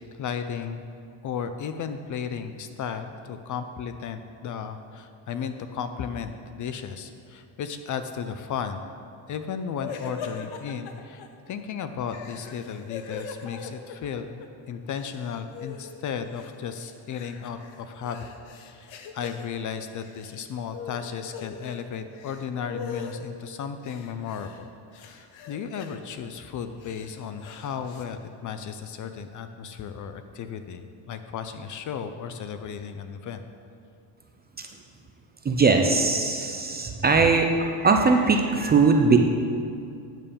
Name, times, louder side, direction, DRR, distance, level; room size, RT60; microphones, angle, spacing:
voice 1, 0.1-0.8 1.2-8.9 9.3-18.3 18.6-33.4, left 7 dB, 45° left, 9 dB, 0.4 m, -35 dB
sound 1, 9.8-11.3 12.1-14.5 14.7-16.0 16.3-19.5 19.9-20.4 20.7-21.8 22.1-23.2 23.8-24.6 24.9-26.0 26.6-28.0, left 6 dB, 90° left, 1.0 m, -41 dB
voice 2, 35.4-39.2, right 4 dB, 20° right, 4 dB, 0.4 m, -20 dB
9.1 x 5.3 x 6.9 m, 2.5 s
cardioid pair, 155°, 46 cm